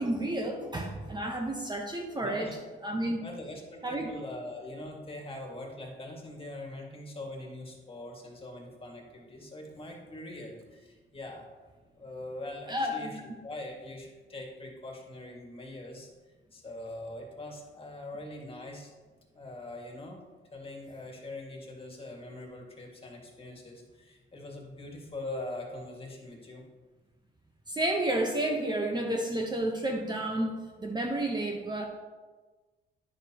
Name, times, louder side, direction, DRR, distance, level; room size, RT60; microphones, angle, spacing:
voice 1, 0.0-2.5 2.8-3.2 3.8-4.1 12.7-13.1 27.7-31.8, right 1 dB, 20° right, 1 dB, 0.9 m, -31 dB
voice 2, 2.2-2.6 3.2-11.5 11.9-18.9 19.3-20.2 20.5-26.6, left 1 dB, 30° left, 0 dB, 1.9 m, -42 dB
10.0 x 6.5 x 2.9 m, 1.3 s
cardioid pair, 90°, 20 cm